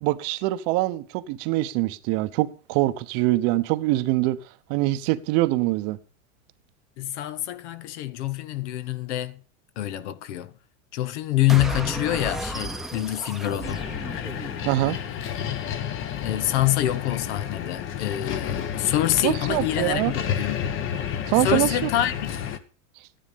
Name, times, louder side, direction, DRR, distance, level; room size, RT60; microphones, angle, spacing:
voice 1, 0.0-4.4 4.7-6.0 14.6-15.0 19.2-20.1 21.3-21.7, right 18 dB, 45° right, 0.9 m, -24 dB
voice 2, 7.0-9.4 9.8-10.5 10.9-13.8 16.2-20.6 21.4-22.3, left 14 dB, 65° left, 1.1 m, -26 dB
sound 1, 11.5-14.9, right 1 dB, ahead, 0.9 m, -33 dB
sound 2, 13.6-22.6, left 9 dB, 35° left, 1.1 m, -31 dB
12.5 x 10.0 x 5.2 m
supercardioid pair, 130°, 38 cm